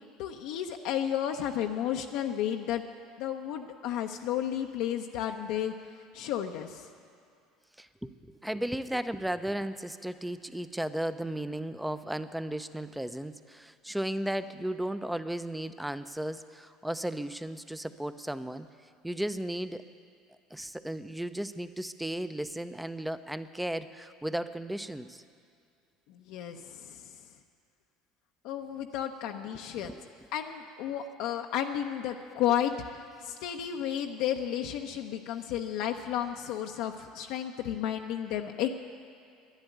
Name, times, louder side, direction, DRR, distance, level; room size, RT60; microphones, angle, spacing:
voice 1, 0.0-2.8 3.2-5.7 6.1-6.8 26.1-27.1 28.4-30.0 30.3-32.7 33.2-38.7, left 10 dB, 65° left, 3 dB, 0.7 m, -32 dB
voice 2, 7.8-18.7 19.0-19.8 20.5-25.2 29.8-30.0, right 1 dB, 5° right, 12 dB, 0.7 m, -35 dB
11.5 x 10.5 x 9.2 m, 2.5 s
hypercardioid pair, 70°, 0 cm